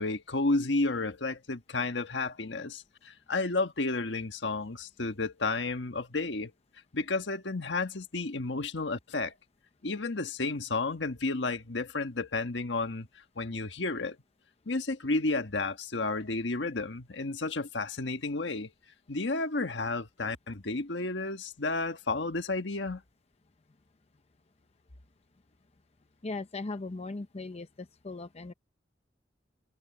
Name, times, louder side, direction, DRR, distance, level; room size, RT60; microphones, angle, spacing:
voice 1, 0.0-6.5 6.9-9.3 9.8-13.1 13.4-14.2 14.7-18.7 19.1-23.0, left 3 dB, 75° left, 1.4 m, -32 dB
voice 2, 26.2-28.5, left 3 dB, 35° left, 0.7 m, -38 dB
head